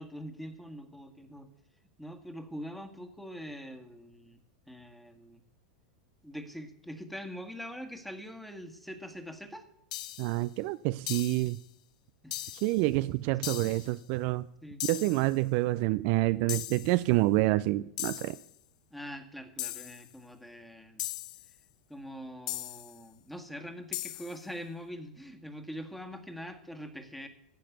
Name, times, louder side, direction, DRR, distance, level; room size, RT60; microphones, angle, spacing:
voice 1, 0.0-1.5 2.0-4.4 4.7-5.4 6.2-9.6 12.2-12.4 13.4-13.5 14.6-14.8 18.9-21.0 21.9-27.3, equal, ahead, 1.8 m, -43 dB
sound 1, 9.9-10.4 11.1-11.6 12.3-12.8 13.4-13.9 14.8-15.3 16.5-17.0 18.0-18.5 19.6-20.1 21.0-21.5 22.5-23.0 23.9-24.4, left 14 dB, 65° left, 0.5 m, -38 dB
voice 2, 10.2-11.6 12.6-14.5 14.9-18.4, right 19 dB, 55° right, 0.5 m, -27 dB
15.5 x 5.9 x 9.3 m
hypercardioid pair, 95°, 4 cm